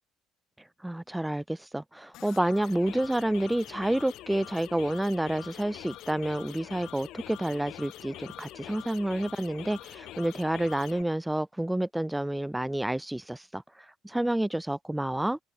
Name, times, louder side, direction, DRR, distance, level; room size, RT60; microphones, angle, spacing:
voice 1, 0.8-15.4, right 1 dB, 5° right, 0.4 m, -29 dB
sound 1, 2.1-11.0, left 14 dB, 65° left, 1.1 m, -45 dB
open air
cardioid pair, 105°, 0 cm